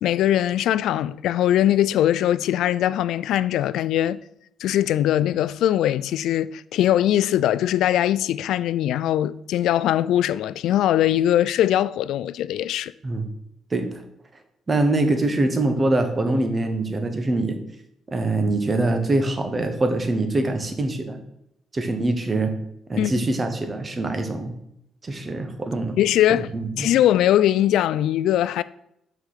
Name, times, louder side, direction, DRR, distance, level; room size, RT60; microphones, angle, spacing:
voice 1, 0.0-4.2 4.6-12.9 23.0-23.1 26.0-26.5 26.8-28.6, left 12 dB, 85° left, 0.3 m, -21 dB
voice 2, 13.7-14.0 14.7-17.6 18.1-21.2 21.7-22.5 22.9-24.5 25.0-26.0 26.3-26.9, right 2 dB, 25° right, 1.3 m, -24 dB
6.1 x 4.9 x 5.8 m
cardioid pair, 90°, 0 cm